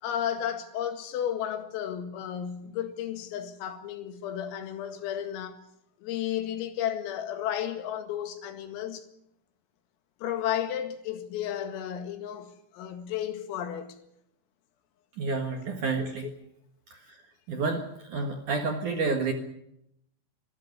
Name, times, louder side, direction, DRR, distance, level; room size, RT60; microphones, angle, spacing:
voice 1, 0.0-5.6 6.0-9.1 10.2-14.0 16.2-16.3, left 10 dB, 85° left, 4.6 m, -33 dB
voice 2, 15.2-16.3 17.5-19.3, right 4 dB, 60° right, 2.3 m, -29 dB
26.0 x 14.5 x 9.5 m
omnidirectional pair, 5.9 m